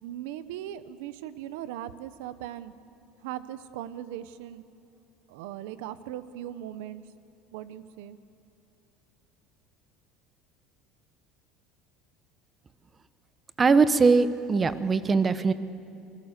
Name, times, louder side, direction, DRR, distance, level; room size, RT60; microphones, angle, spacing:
voice 1, 0.0-2.7 3.2-4.6 5.3-7.0 7.5-8.2, right 12 dB, 85° right, 14 dB, 1.0 m, -39 dB
voice 2, 13.6-15.5, right 4 dB, 20° right, 13 dB, 0.8 m, -21 dB
26.5 x 21.0 x 6.7 m, 2.8 s
cardioid pair, 145°, 0 cm